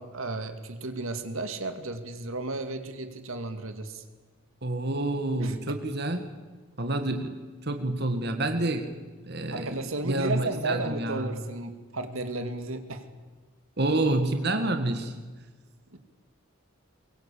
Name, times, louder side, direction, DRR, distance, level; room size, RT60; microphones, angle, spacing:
voice 1, 0.0-4.0 5.4-5.5 9.5-13.0 15.9-16.0, right 2 dB, 75° right, 7 dB, 2.3 m, -33 dB
voice 2, 4.6-6.2 6.8-8.9 9.2-9.8 10.0-11.4 13.8-15.1, right 2 dB, 50° right, 6 dB, 2.0 m, -28 dB
23.0 x 23.0 x 8.6 m, 1.4 s
head